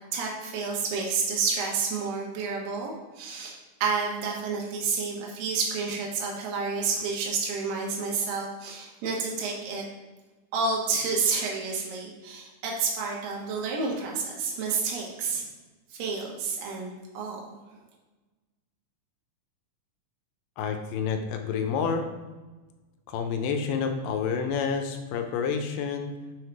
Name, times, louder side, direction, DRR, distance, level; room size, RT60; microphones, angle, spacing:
voice 1, 0.1-9.8 10.5-15.4 15.9-17.4, right 4 dB, 75° right, -1 dB, 2.8 m, -30 dB
voice 2, 20.6-22.0 23.1-26.1, left 6 dB, 80° left, 6 dB, 2.2 m, -29 dB
6.3 x 4.7 x 4.7 m, 1.2 s
omnidirectional pair, 4.1 m